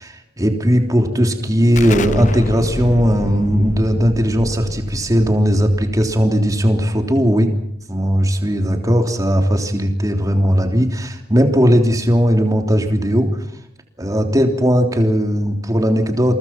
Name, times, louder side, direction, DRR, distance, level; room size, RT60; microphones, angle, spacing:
voice 1, 0.0-7.5 7.9-13.3 14.0-16.4, equal, 20° right, 4 dB, 3.3 m, -17 dB
Explosion, 1.8-7.2, left 2 dB, 45° left, 1.0 m, -29 dB
29.0 x 23.0 x 6.0 m, 0.73 s
head